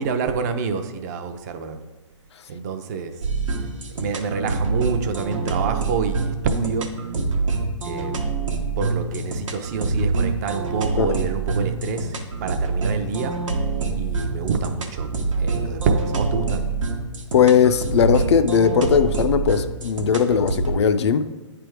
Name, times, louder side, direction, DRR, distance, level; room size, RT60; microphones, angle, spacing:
voice 1, 0.0-1.8 2.5-3.2 3.9-6.9 7.8-8.1 8.8-12.1 12.4-13.4 13.9-16.7, right 5 dB, 35° right, 7 dB, 0.5 m, -27 dB
sound 1, 3.2-20.8, right 3 dB, 90° right, 1.0 m, -26 dB
voice 2, 17.3-21.3, left 7 dB, 60° left, 10 dB, 0.4 m, -18 dB
8.4 x 3.4 x 4.7 m, 1.2 s
hypercardioid pair, 145°, 16 cm